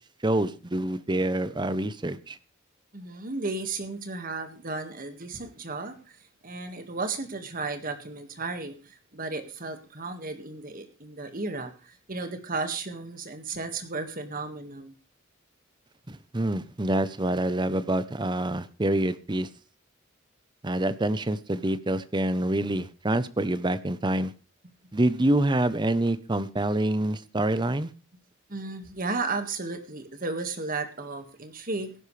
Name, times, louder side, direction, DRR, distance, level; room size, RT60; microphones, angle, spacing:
voice 1, 0.2-2.4 16.1-19.5 20.6-24.3 24.9-27.9, right 1 dB, 20° right, 0.7 m, -26 dB
voice 2, 2.9-6.2 6.4-14.9 28.5-31.9, right 3 dB, 40° right, 1.7 m, -34 dB
17.0 x 10.5 x 3.3 m
head